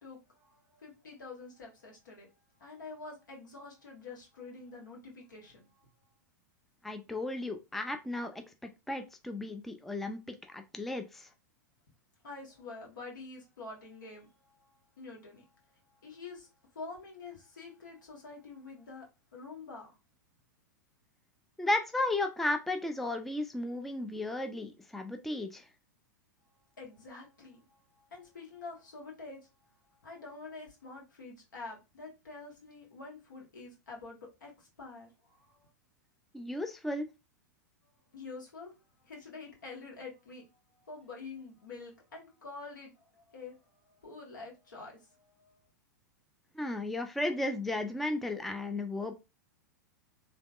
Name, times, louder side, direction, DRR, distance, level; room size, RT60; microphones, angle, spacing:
voice 1, 0.0-2.3 2.6-5.7 12.2-16.5 16.7-19.1 19.3-20.0 26.8-29.7 30.0-35.7 38.1-38.7 39.0-43.6 44.0-45.6, left 3 dB, 80° left, 1.4 m, -47 dB
voice 2, 6.8-8.3 8.9-11.3 21.6-25.6 36.3-37.1 46.6-49.1, left 2 dB, ahead, 0.3 m, -34 dB
3.3 x 2.9 x 2.3 m
hypercardioid pair, 105°, 10 cm